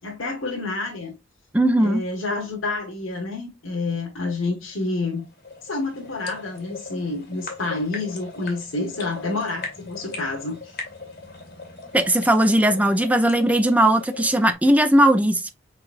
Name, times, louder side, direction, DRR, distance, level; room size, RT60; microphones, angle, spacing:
voice 1, 0.0-1.1 1.8-5.2 5.6-10.8, left 3 dB, 85° left, 1.4 m, -28 dB
voice 2, 1.5-2.0 11.9-15.5, right 1 dB, 5° right, 0.5 m, -18 dB
sound 1, 4.7-14.5, left 3 dB, 50° left, 2.0 m, -40 dB
5.1 x 4.0 x 2.5 m
head